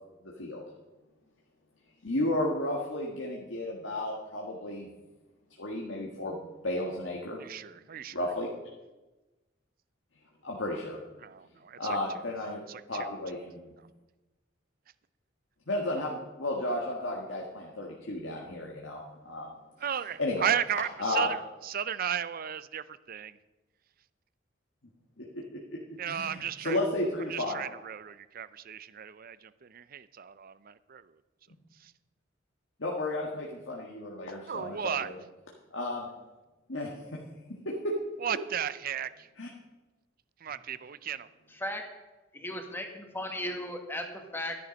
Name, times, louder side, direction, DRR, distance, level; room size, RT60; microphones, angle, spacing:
voice 1, 2.0-4.9 5.6-6.4 6.6-7.4 8.1-8.5 10.4-11.0 11.8-12.6 12.9-13.7 15.7-19.5 20.2-20.5 21.0-21.3 25.2-25.8 26.1-27.6 32.8-35.1 35.7-36.1 36.7-37.2 37.6-37.9 39.4-39.5, left 1 dB, 70° left, -2 dB, 1.7 m, -33 dB
voice 2, 7.4-8.2 11.2-12.0 12.7-13.1 19.8-21.4 21.6-23.4 26.0-26.8 27.3-31.1 31.8-31.9 34.5-35.1 38.2-39.3 40.4-41.3, right 8 dB, 45° right, 16 dB, 0.5 m, -34 dB
voice 3, 41.5-41.8 42.3-44.6, left 1 dB, 10° left, 3 dB, 1.6 m, -36 dB
13.0 x 10.5 x 5.2 m, 1.1 s
head